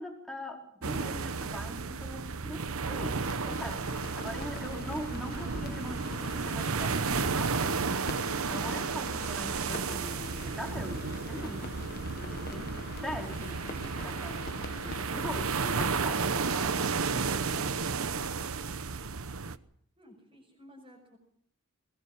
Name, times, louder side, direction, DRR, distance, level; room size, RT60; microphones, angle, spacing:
voice 1, 0.0-17.7, equal, ahead, 0 dB, 4.4 m, -42 dB
sound 1, 0.8-19.6, right 4 dB, 75° right, 1.0 m, -33 dB
sound 2, 3.2-16.2, left 3 dB, 45° left, 1.2 m, -45 dB
voice 2, 20.0-21.2, equal, 25° right, -2 dB, 6.3 m, -54 dB
22.0 x 20.0 x 7.1 m, 0.67 s
head